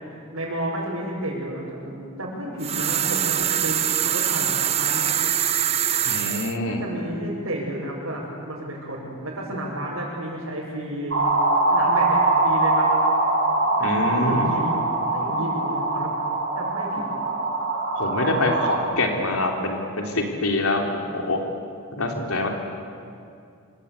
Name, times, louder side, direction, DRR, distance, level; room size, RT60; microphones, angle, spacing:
voice 1, 0.0-5.2 6.6-11.2 11.7-12.9 13.8-14.9 15.1-16.1 16.5-17.0, right 1 dB, 70° right, -8 dB, 6.4 m, -31 dB
sound 1, 2.6-6.6, right 10 dB, 30° right, 0.6 m, -23 dB
voice 2, 6.0-6.8 13.8-14.5 17.9-21.4 21.9-22.5, left 2 dB, 80° left, 2 dB, 3.5 m, -25 dB
sound 2, 11.1-18.8, right 2 dB, 55° right, 6.6 m, -22 dB
27.0 x 26.0 x 8.4 m, 2.4 s
head